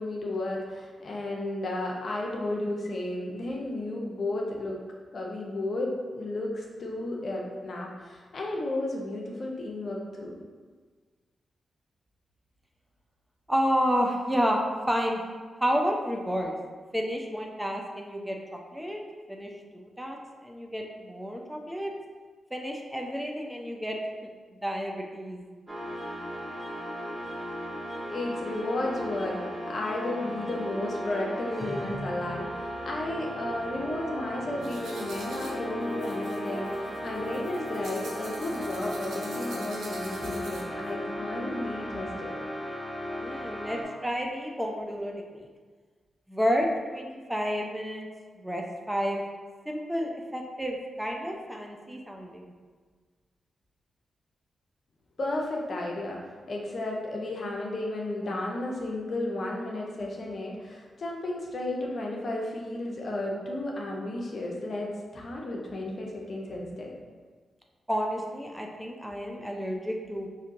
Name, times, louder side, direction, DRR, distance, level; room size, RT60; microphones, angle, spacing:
voice 1, 0.0-4.8 5.1-10.3 28.1-29.4 29.7-42.4 55.2-56.2 56.5-66.9, left 1 dB, 60° left, -1 dB, 0.7 m, -33 dB
voice 2, 13.5-14.6 14.9-15.2 15.6-16.6 16.9-19.0 19.3-20.2 20.4-21.9 22.5-24.0 24.5-25.4 43.2-45.5 46.3-48.1 48.4-49.2 49.7-52.5 67.9-70.3, equal, 5° right, 1 dB, 0.6 m, -30 dB
sound 1, 25.7-43.8, equal, 25° right, 0.9 m, -36 dB
sound 2, 34.6-40.9, right 2 dB, 80° right, 0.6 m, -46 dB
4.3 x 2.7 x 2.6 m, 1.5 s
supercardioid pair, 45°, 0 cm